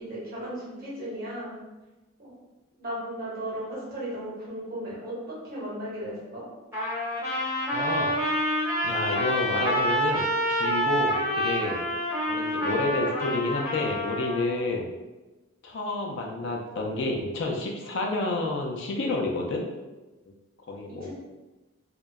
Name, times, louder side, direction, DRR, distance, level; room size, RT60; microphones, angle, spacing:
voice 1, 0.0-1.6 2.2-2.3 2.8-6.4 20.9-21.1, right 1 dB, 45° right, -7 dB, 0.9 m, -36 dB
Trumpet, 6.7-14.5, equal, 15° right, 0.6 m, -27 dB
voice 2, 7.7-8.1 8.8-11.8 12.3-14.9 15.6-19.6 20.7-21.1, left 2 dB, 55° left, 1 dB, 0.3 m, -29 dB
2.6 x 2.1 x 2.2 m, 1.1 s
head